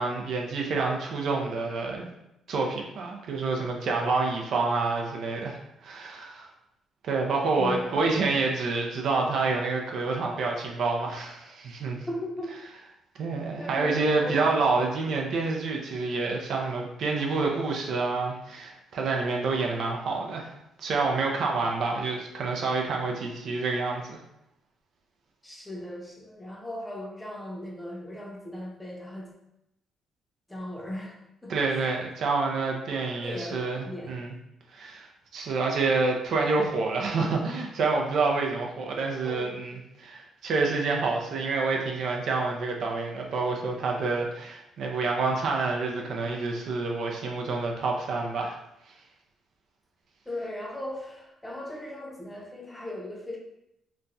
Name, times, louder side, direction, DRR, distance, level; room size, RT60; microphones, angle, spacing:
voice 1, 0.0-2.1 2.5-6.5 7.0-12.1 13.2-20.5 20.8-24.2 31.5-34.3 34.7-35.1 35.3-48.6, right 3 dB, 70° right, 0 dB, 0.5 m, -28 dB
voice 2, 7.5-8.4 11.4-11.5 12.1-12.6 13.6-14.6 25.4-29.3 30.5-31.8 33.2-34.2 39.2-39.5 50.3-53.4, left 1 dB, 10° left, -1 dB, 0.6 m, -38 dB
3.0 x 2.2 x 2.6 m, 0.83 s
cardioid pair, 90°, 0 cm